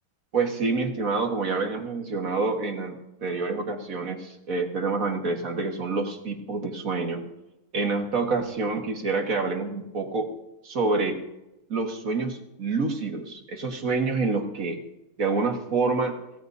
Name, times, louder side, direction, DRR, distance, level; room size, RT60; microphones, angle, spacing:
voice 1, 0.3-7.3 7.7-10.3 10.6-11.3 11.7-14.8 15.2-16.2, right 3 dB, 45° right, 3 dB, 1.8 m, -27 dB
25.5 x 17.0 x 2.7 m, 0.96 s
omnidirectional pair, 2.2 m